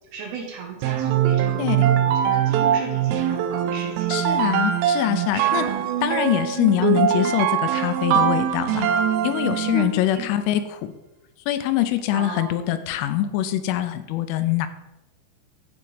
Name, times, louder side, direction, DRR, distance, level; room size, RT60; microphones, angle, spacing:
voice 1, 0.0-4.2 5.3-5.8 9.7-9.8 10.1-10.3 12.1-12.6, right 6 dB, 70° right, 1 dB, 2.7 m, -35 dB
sound 1, 0.8-10.0, right 9 dB, 90° right, 3.2 m, -22 dB
voice 2, 4.1-5.7 6.0-8.9 9.2-10.9 11.5-14.7, left 12 dB, 85° left, 11 dB, 3.1 m, -23 dB
11.0 x 4.5 x 4.9 m, 1.0 s
omnidirectional pair, 5.6 m